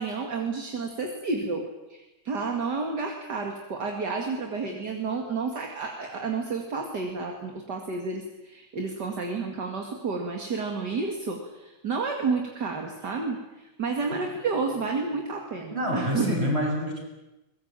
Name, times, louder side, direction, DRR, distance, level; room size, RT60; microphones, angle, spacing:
voice 1, 0.0-1.6 1.9-16.4, right 4 dB, 60° right, 3 dB, 2.8 m, -30 dB
voice 2, 15.7-17.1, equal, 30° right, 0 dB, 7.4 m, -27 dB
23.0 x 21.0 x 8.9 m, 1.0 s
omnidirectional pair, 2.1 m